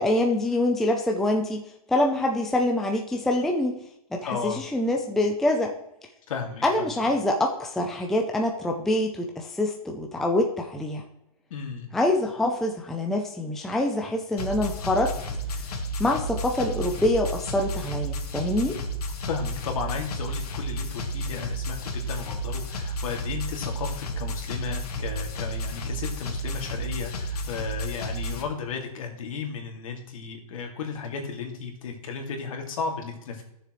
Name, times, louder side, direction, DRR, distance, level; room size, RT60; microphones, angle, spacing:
voice 1, 0.0-3.8 4.1-5.7 6.6-11.0 11.9-15.1 16.0-18.7, left 1 dB, ahead, 1 dB, 0.4 m, -25 dB
voice 2, 4.2-4.6 6.3-7.0 11.5-11.9 19.2-33.4, left 5 dB, 60° left, 2 dB, 2.3 m, -34 dB
sound 1, 14.4-28.4, equal, 90° left, 1.9 m, -32 dB
14.5 x 6.8 x 3.1 m, 0.84 s
hypercardioid pair, 160°, 19 cm